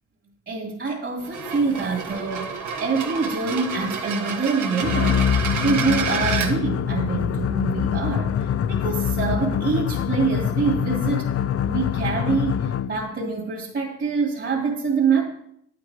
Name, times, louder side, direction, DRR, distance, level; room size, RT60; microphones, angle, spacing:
voice 1, 0.5-5.3 5.6-11.3 11.7-15.2, right 4 dB, 40° right, -1 dB, 2.4 m, -25 dB
sound 1, 1.2-6.5, right 6 dB, 75° right, 1.6 m, -29 dB
sound 2, 4.8-13.1, left 8 dB, 50° left, 0.5 m, -24 dB
9.7 x 8.5 x 4.8 m, 0.69 s
cardioid pair, 90°, 30 cm